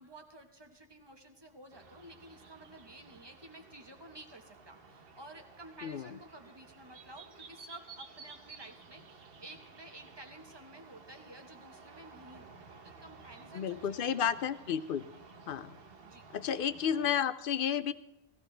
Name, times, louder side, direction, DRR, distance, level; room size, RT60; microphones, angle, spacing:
voice 1, 0.0-14.5 15.0-15.2 16.0-16.3, right 1 dB, 25° right, 5 dB, 1.3 m, -53 dB
sound 1, 1.7-17.2, right 4 dB, 65° right, 1.1 m, -54 dB
voice 2, 13.5-15.1 15.5-15.8 16.3-17.9, left 8 dB, 60° left, 14 dB, 0.7 m, -32 dB
17.5 x 15.0 x 3.4 m, 0.96 s
omnidirectional pair, 1.1 m